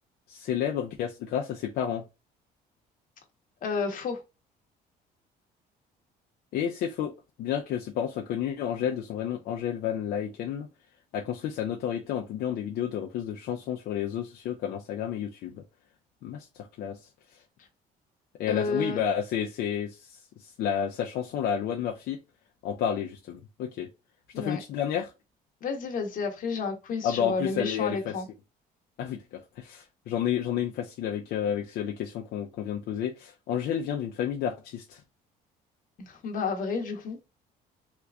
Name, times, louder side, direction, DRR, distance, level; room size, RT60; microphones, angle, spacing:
voice 1, 0.3-2.0 6.5-7.1 7.4-10.7 11.1-15.6 16.2-17.0 18.4-22.2 22.6-23.9 24.4-25.1 27.0-28.1 29.0-35.0, left 9 dB, 70° left, 0.5 m, -31 dB
voice 2, 3.6-4.2 18.5-19.0 24.3-24.6 25.6-28.3 36.0-37.2, left 4 dB, 55° left, 1.0 m, -31 dB
3.3 x 2.9 x 2.4 m
cardioid pair, 110°, 17 cm